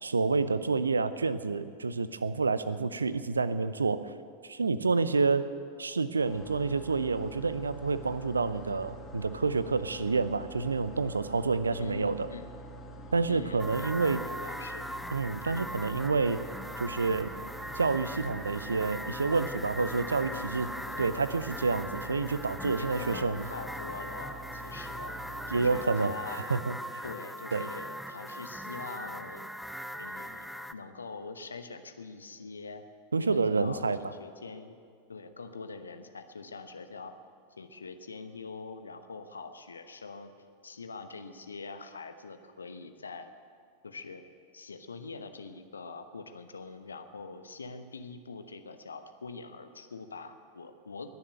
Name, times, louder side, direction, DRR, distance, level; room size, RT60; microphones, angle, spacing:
voice 1, 0.0-4.1 4.4-5.5 5.8-12.3 13.1-14.2 15.1-16.5 16.8-17.3 17.7-20.7 21.0-23.5 25.5-26.1 26.5-26.7 27.5-27.6 33.1-34.0, right 4 dB, 75° right, 15 dB, 0.6 m, -28 dB
sound 1, 6.2-25.8, right 1 dB, 20° left, 2.4 m, -46 dB
voice 2, 11.8-12.5 13.3-14.9 20.3-21.1 22.8-25.1 25.5-26.4 27.0-29.5 30.0-32.8 33.2-34.8 35.1-37.1 37.6-40.3 40.6-43.3 43.8-44.2 44.5-51.1, left 4 dB, 75° left, 8 dB, 1.1 m, -44 dB
sound 2, 13.6-30.7, equal, ahead, 0.6 m, -40 dB
sound 3, 16.3-26.3, right 5 dB, 40° right, 1.4 m, -53 dB
21.0 x 7.2 x 9.1 m, 2.2 s
figure-of-eight pair, 90°, 0 cm